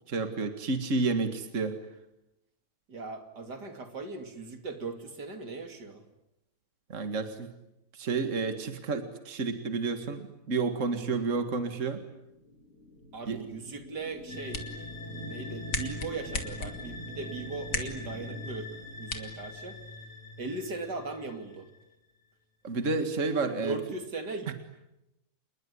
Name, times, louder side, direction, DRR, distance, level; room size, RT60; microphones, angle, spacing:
voice 1, 0.1-1.8 6.9-7.5 7.9-12.0 13.3-13.4 22.6-23.8, right 3 dB, 50° right, 8 dB, 2.3 m, -30 dB
voice 2, 2.9-6.0 11.0-11.3 13.1-14.6 15.2-18.7 19.0-19.8 20.4-21.7 23.6-24.5, right 3 dB, 80° right, 6 dB, 3.3 m, -38 dB
sound 1, 12.0-19.4, left 1 dB, 65° right, 5.5 m, -48 dB
sound 2, 14.1-20.1, left 3 dB, 85° left, 3.2 m, -40 dB
sound 3, 14.3-21.8, left 1 dB, 30° left, 4.5 m, -43 dB
28.0 x 21.5 x 9.7 m, 0.90 s
omnidirectional pair, 1.8 m